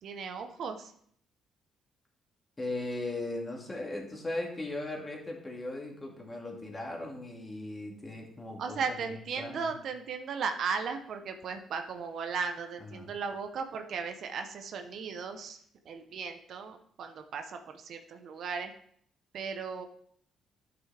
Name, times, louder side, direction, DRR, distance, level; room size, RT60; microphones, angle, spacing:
voice 1, 0.0-0.9 8.6-15.6 15.9-18.7 19.3-19.9, right 5 dB, 65° right, 6 dB, 0.8 m, -36 dB
voice 2, 2.6-9.8 12.8-13.1, left 2 dB, 25° left, 0 dB, 2.2 m, -38 dB
11.0 x 6.0 x 3.4 m, 0.63 s
cardioid pair, 90°, 0 cm